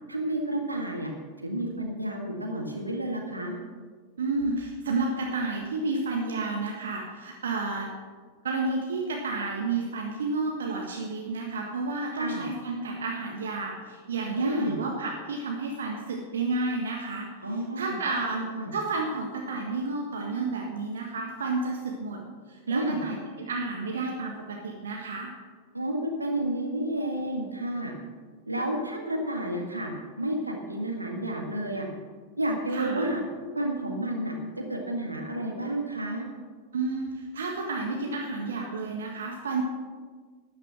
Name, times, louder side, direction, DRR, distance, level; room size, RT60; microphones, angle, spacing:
voice 1, 0.1-1.1 1.4-3.6 12.1-12.4 14.3-14.8 17.4-18.0 18.3-18.7 22.7-23.0 25.7-27.9 28.5-29.9 30.2-31.9 32.4-33.2 33.5-36.2, right 1 dB, 85° right, 1 dB, 1.9 m, -30 dB
voice 2, 4.2-7.9 8.4-17.3 17.8-18.4 18.7-22.2 22.5-25.3 32.7-33.1 36.7-39.6, right 3 dB, 65° right, 0 dB, 1.5 m, -31 dB
12.5 x 10.0 x 6.2 m, 1.5 s
figure-of-eight pair, 90°, 0 cm